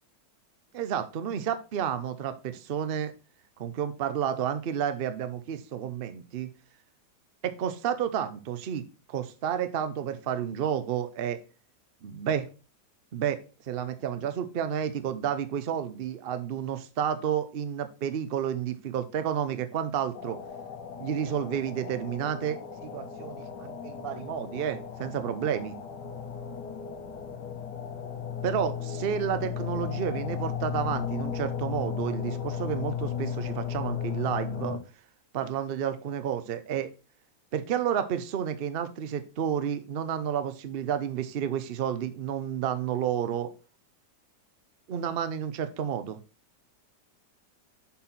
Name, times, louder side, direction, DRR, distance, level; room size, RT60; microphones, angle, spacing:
voice 1, 0.7-3.1 3.6-6.5 7.4-11.4 12.0-12.5 13.1-13.4 13.7-20.4 21.0-22.6 22.8-25.7 28.4-34.8 35.3-36.9 37.5-43.5 44.9-46.2, right 9 dB, 65° right, 10 dB, 0.5 m, -31 dB
sound 1, 20.1-34.8, left 8 dB, 75° left, 1.5 m, -35 dB
7.4 x 4.3 x 4.3 m, 0.33 s
omnidirectional pair, 1.9 m